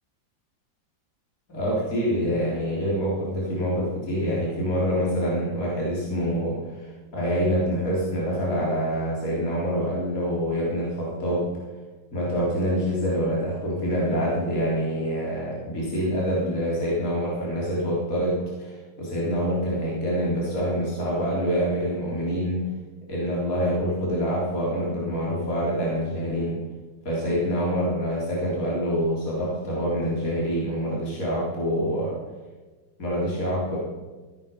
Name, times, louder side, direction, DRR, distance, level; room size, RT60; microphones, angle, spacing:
voice 1, 1.5-11.5 12.1-22.6 23.1-26.6 27.0-32.1 33.0-33.8, equal, 45° left, -6 dB, 4.2 m, -26 dB
16.5 x 9.0 x 5.4 m, 1.3 s
omnidirectional pair, 2.0 m